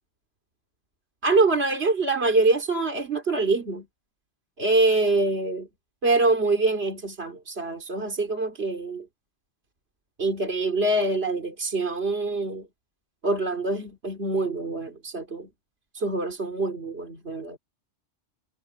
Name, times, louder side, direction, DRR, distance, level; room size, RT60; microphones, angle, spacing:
voice 1, 1.2-3.9 4.6-5.7 6.0-9.1 10.2-12.7 13.2-15.5 15.9-17.6, right 3 dB, 55° right, 3.4 m, -25 dB
omnidirectional pair, 1.3 m